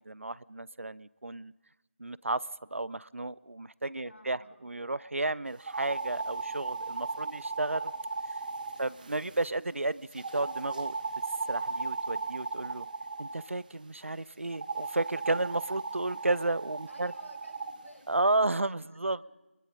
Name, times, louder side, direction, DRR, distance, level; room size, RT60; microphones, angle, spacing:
voice 1, 0.1-1.5 2.0-2.5 2.7-7.9 8.8-11.0 11.5-12.9 13.2-17.1 18.1-19.2, right 2 dB, 80° right, 21 dB, 0.6 m, -32 dB
voice 2, 4.0-4.6 8.8-9.1 16.9-19.2, left 1 dB, 80° left, 1 dB, 5.8 m, -55 dB
sound 1, 5.6-9.5 10.1-13.4 14.5-17.7, right 3 dB, 40° right, 1.7 m, -37 dB
26.5 x 21.5 x 5.3 m, 1.1 s
figure-of-eight pair, 165°, 7 cm